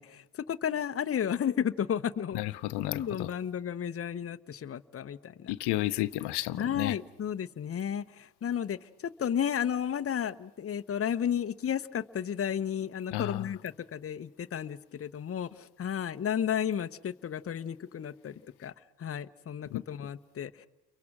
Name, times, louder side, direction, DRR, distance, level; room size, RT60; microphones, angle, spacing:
voice 1, 0.0-2.4 2.8-5.5 6.6-18.3 18.6-18.7 19.0-20.7, left 8 dB, 35° left, 0.9 m, -33 dB
voice 2, 2.3-3.3 5.5-7.0 13.1-13.5 19.7-20.1, left 17 dB, 80° left, 0.8 m, -32 dB
29.5 x 23.5 x 6.1 m
cardioid pair, 95°, 40 cm